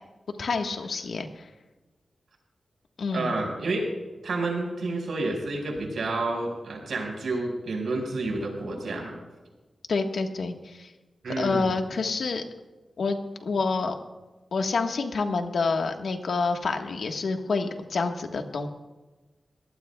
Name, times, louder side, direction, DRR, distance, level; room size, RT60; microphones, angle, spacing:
voice 1, 0.4-1.5 3.0-3.3 9.9-10.9 11.3-12.4 13.0-13.9 14.5-18.7, left 4 dB, 80° left, 4 dB, 1.4 m, -28 dB
voice 2, 3.1-3.9 4.2-9.2 11.2-11.7, right 2 dB, 85° right, 0 dB, 5.2 m, -29 dB
22.5 x 18.0 x 2.3 m, 1.2 s
wide cardioid pair, 155°, 0 cm